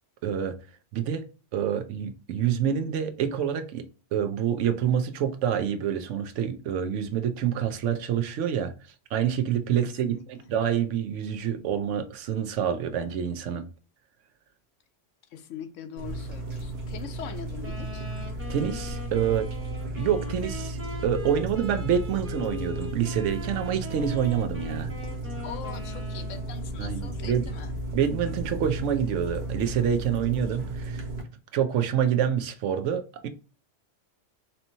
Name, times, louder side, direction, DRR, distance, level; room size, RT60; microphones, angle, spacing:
voice 1, 0.2-0.5 0.9-8.7 9.1-13.7 18.5-19.5 20.0-24.9 26.8-27.5 27.9-31.0 31.5-33.3, right 8 dB, 80° right, 0.9 m, -27 dB
voice 2, 10.0-10.5 15.3-18.1 25.4-27.7, left 8 dB, 90° left, 1.0 m, -41 dB
sound 1, 16.0-31.2, right 1 dB, 60° right, 1.1 m, -34 dB
Wind instrument woodwind instrument, 17.6-26.7, left 2 dB, 15° right, 0.7 m, -41 dB
4.3 x 2.9 x 2.7 m
omnidirectional pair, 1.2 m